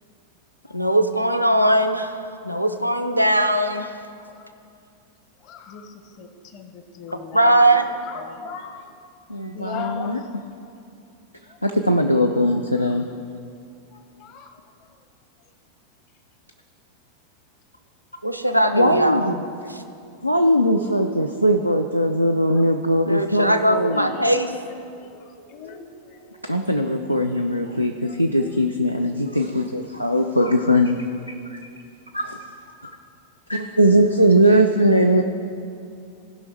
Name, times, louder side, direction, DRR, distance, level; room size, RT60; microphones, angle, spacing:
voice 1, 0.7-4.0 7.3-7.9 18.2-19.4 19.7-19.8 23.0-24.5, right 1 dB, 90° right, 7 dB, 0.6 m, -20 dB
voice 2, 5.4-8.9 9.5-10.3 11.5-11.6 12.4-13.0 13.9-14.5 22.5-22.6 23.9-26.7 28.0-28.2 30.0-30.3, left 6 dB, 40° left, 7 dB, 0.8 m, -40 dB
voice 3, 9.3-10.2 11.6-13.1 18.7-19.4 20.2-24.1 26.5-31.6 32.1-32.4 32.8-32.9 33.5-35.2, equal, 90° left, 4 dB, 0.4 m, -20 dB
16.5 x 5.7 x 4.2 m, 2.5 s
figure-of-eight pair, 90°, 0 cm